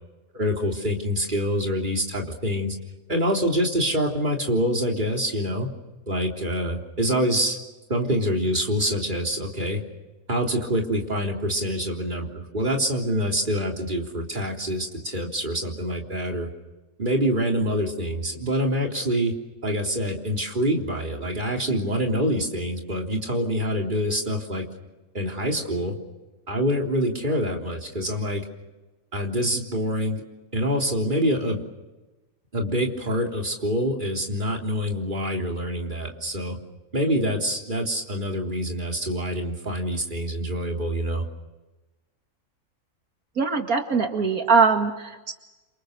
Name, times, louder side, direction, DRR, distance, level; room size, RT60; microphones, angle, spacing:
voice 1, 0.3-2.8 3.1-5.7 6.1-7.6 7.9-9.8 10.3-16.5 17.0-19.3 19.6-24.6 25.1-25.9 26.5-28.4 29.1-30.2 30.5-31.6 32.5-36.6 36.9-41.2, equal, 35° right, 1 dB, 3.8 m, -26 dB
voice 2, 43.4-45.4, right 5 dB, 80° right, 4 dB, 2.5 m, -22 dB
30.0 x 26.5 x 6.8 m, 1.1 s
omnidirectional pair, 1.5 m